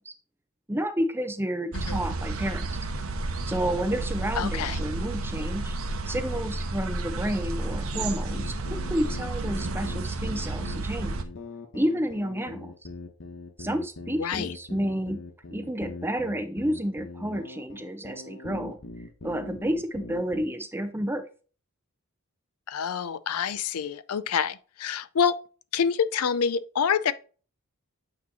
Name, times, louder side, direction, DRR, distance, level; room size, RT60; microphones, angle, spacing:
voice 1, 0.7-2.8 3.5-5.7 6.1-11.2 11.7-12.7 13.6-15.2 15.5-18.8 19.2-21.2, equal, 10° right, 0.6 m, -30 dB
sound 1, 1.7-11.2, right 2 dB, 65° right, 0.8 m, -31 dB
voice 2, 4.4-4.8 14.2-14.5 22.7-25.4 25.7-27.1, left 7 dB, 75° left, 0.5 m, -27 dB
sound 2, 7.7-20.4, left 3 dB, 60° left, 1.0 m, -41 dB
8.5 x 3.0 x 4.1 m
head